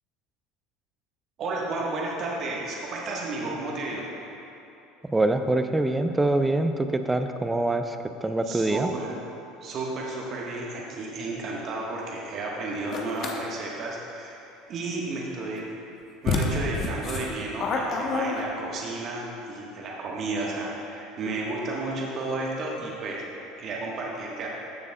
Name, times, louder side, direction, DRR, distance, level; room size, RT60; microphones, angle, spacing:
voice 1, 1.4-4.1 8.4-9.1 9.6-15.6 16.2-24.5, right 2 dB, 50° right, -3 dB, 1.2 m, -32 dB
voice 2, 5.1-8.9, right 2 dB, 15° right, 8 dB, 0.5 m, -25 dB
sound 1, 12.9-13.4 15.6-15.7 16.2-18.8, left 3 dB, 45° left, 0.9 m, -28 dB
13.5 x 6.9 x 2.2 m, 2.9 s
hypercardioid pair, 70°, 0 cm